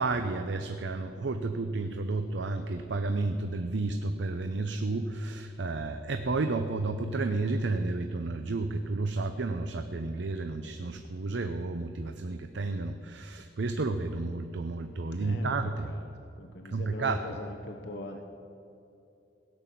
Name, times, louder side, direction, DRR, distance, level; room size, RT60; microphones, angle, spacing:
voice 1, 0.0-15.9 16.7-17.2, right 3 dB, 85° right, 7 dB, 0.6 m, -31 dB
voice 2, 15.1-16.1 16.4-18.2, left 2 dB, 70° left, 3 dB, 0.9 m, -42 dB
17.0 x 6.0 x 8.3 m, 2.7 s
head